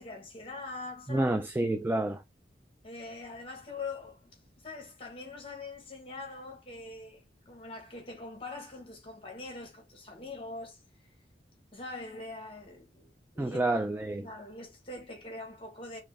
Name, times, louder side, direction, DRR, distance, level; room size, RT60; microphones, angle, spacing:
voice 1, 0.0-1.3 2.8-11.1 11.7-13.7 14.2-16.0, left 3 dB, 30° left, 1.5 m, -43 dB
voice 2, 1.1-2.2 13.4-14.3, right 2 dB, 10° right, 0.3 m, -29 dB
4.2 x 2.8 x 3.5 m
head